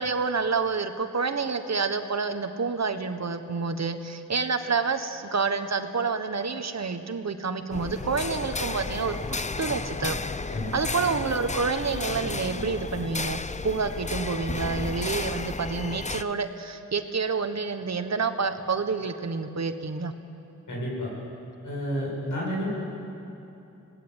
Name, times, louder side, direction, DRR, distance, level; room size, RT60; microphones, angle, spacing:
voice 1, 0.0-10.2 10.7-20.1, right 4 dB, 60° right, 8 dB, 1.4 m, -28 dB
sound 1, 7.7-16.2, left 3 dB, 25° left, 0.6 m, -33 dB
voice 2, 20.7-21.1 21.6-22.8, equal, 90° left, -4 dB, 8.0 m, -30 dB
27.0 x 18.5 x 8.2 m, 2.9 s
wide cardioid pair, 75°, 30 cm